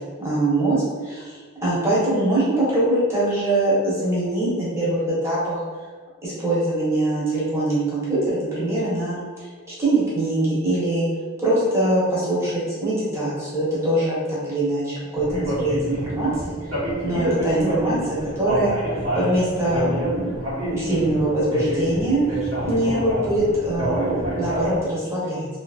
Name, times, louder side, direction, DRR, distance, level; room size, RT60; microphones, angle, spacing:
voice 1, 0.2-5.6 6.2-11.1 11.4-16.3 17.0-18.7 19.1-20.3 20.7-22.2 22.7-24.1 24.3-25.5, right 1 dB, 15° right, -9 dB, 1.0 m, -23 dB
sound 1, 15.2-24.8, right 1 dB, 80° right, 1.2 m, -27 dB
2.9 x 2.7 x 2.4 m, 1.5 s
head